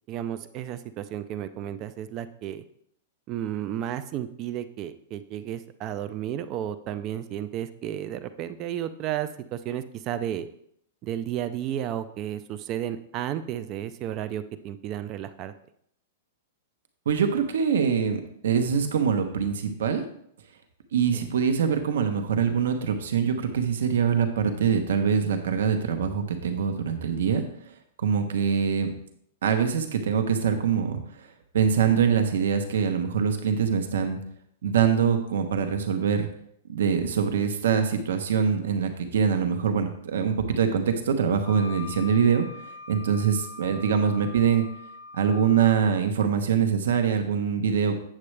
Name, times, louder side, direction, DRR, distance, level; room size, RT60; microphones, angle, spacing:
voice 1, 0.1-2.6 3.3-10.5 11.0-15.5 21.1-21.3, right 11 dB, 25° right, 12 dB, 0.4 m, -33 dB
voice 2, 17.1-20.0 20.9-27.4 28.0-28.9 29.4-31.3 31.5-34.2 34.6-36.3 36.7-42.5 42.9-44.6 45.2-48.0, right 7 dB, 80° right, 6 dB, 1.0 m, -24 dB
Wind instrument woodwind instrument, 41.4-45.9, left 4 dB, 20° left, 2.5 m, -43 dB
8.5 x 7.5 x 3.3 m, 0.70 s
supercardioid pair, 165°, 0 cm